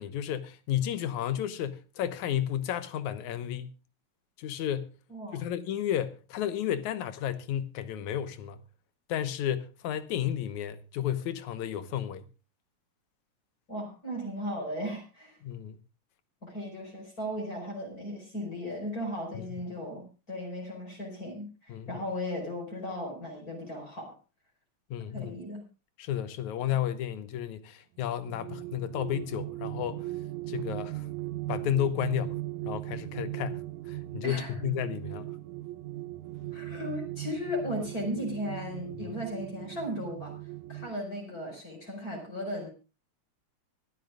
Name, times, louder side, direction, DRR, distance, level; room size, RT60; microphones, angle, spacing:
voice 1, 0.0-3.7 4.4-5.0 5.3-8.6 9.1-12.3 15.4-15.8 19.3-19.6 21.7-22.1 24.9-25.3 26.0-30.1 30.5-31.1 31.5-35.3 39.0-39.2, left 10 dB, 85° left, 2.4 m, -32 dB
voice 2, 5.1-5.4 13.7-15.4 16.4-24.1 25.1-25.7 34.2-34.5 36.5-42.7, equal, 30° left, 5.3 m, -36 dB
sound 1, 28.1-40.9, right 16 dB, 85° right, 2.3 m, -38 dB
24.5 x 12.0 x 2.3 m
omnidirectional pair, 3.3 m